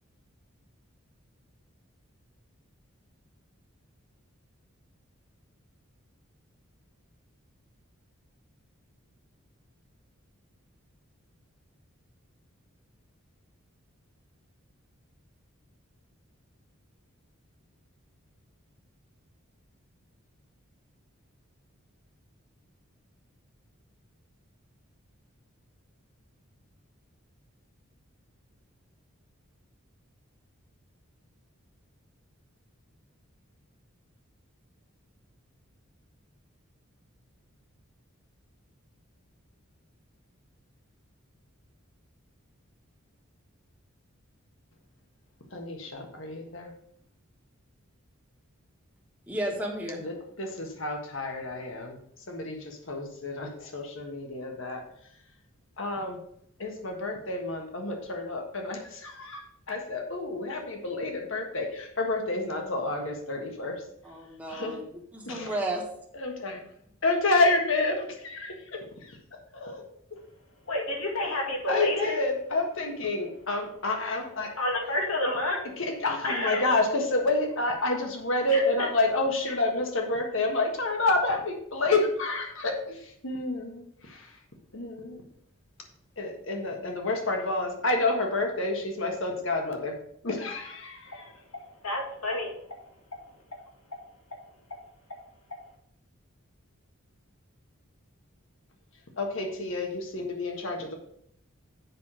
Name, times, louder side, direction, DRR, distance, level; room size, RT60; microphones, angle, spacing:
voice 1, 45.5-46.7 50.0-52.0 52.3-54.8 55.8-56.2 56.6-63.8 64.5-64.8 65.2-65.5 66.1-66.6 67.0-69.2 69.5-69.8 71.7-74.5 75.8-84.3 84.7-85.2 86.2-90.0 90.2-91.3 99.2-100.9, left 2 dB, 65° left, 3 dB, 1.5 m, -29 dB
voice 2, 49.3-50.0 64.0-64.8 65.1-65.8, right 1 dB, 5° right, -3 dB, 1.3 m, -32 dB
voice 3, 70.7-72.1 74.6-75.6 76.2-76.6 78.5-78.9 91.8-92.6, left 1 dB, 90° left, 1 dB, 2.1 m, -29 dB
7.5 x 5.8 x 4.9 m, 0.69 s
head